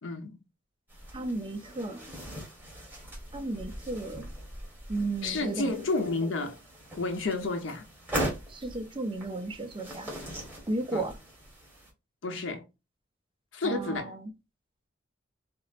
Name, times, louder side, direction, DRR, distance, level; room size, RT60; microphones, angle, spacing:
voice 1, 0.0-0.4 5.2-6.6 7.0-7.8 10.9-11.1 12.2-12.6 13.5-14.1, left 3 dB, 70° left, 0.8 m, -31 dB
sound 1, 0.9-11.9, right 1 dB, 10° right, 1.3 m, -40 dB
voice 2, 1.1-2.1 3.3-4.3 4.9-5.7 8.5-10.1 10.7-11.2 13.6-14.3, right 2 dB, 25° right, 0.5 m, -34 dB
4.3 x 2.0 x 2.4 m
head